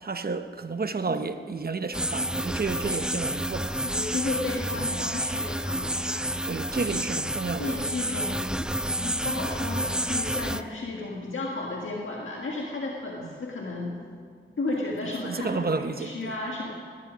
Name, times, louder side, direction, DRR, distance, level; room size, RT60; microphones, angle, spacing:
voice 1, 0.0-3.8 6.4-7.9 13.2-13.3 15.2-16.3, right 4 dB, 50° right, 0.8 m, -31 dB
sound 1, 1.9-10.6, right 1 dB, 5° right, 0.4 m, -29 dB
voice 2, 3.8-6.3 6.9-7.0 7.6-8.7 9.0-13.9 14.6-16.7, left 2 dB, 75° left, 1.7 m, -33 dB
19.0 x 12.0 x 5.1 m
wide cardioid pair, 70°, 21 cm